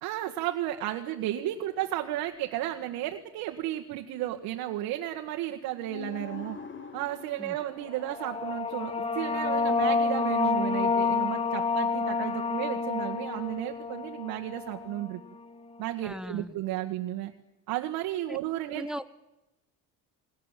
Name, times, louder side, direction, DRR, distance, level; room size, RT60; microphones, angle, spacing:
voice 1, 0.0-6.6 6.9-15.2 15.8-17.3 17.7-18.9, right 13 dB, 85° right, 4 dB, 1.9 m, -33 dB
sound 1, 1.4-3.1 5.5-5.6 5.8-10.3 13.4-14.0 14.7-14.9, left 6 dB, 35° left, 2.5 m, -47 dB
sound 2, 7.9-15.2, left 4 dB, 15° left, 1.3 m, -29 dB
voice 2, 16.0-16.5 18.3-18.4 18.7-19.0, equal, ahead, 13 dB, 0.9 m, -37 dB
29.5 x 21.0 x 7.6 m, 0.98 s
cardioid pair, 135°, 35 cm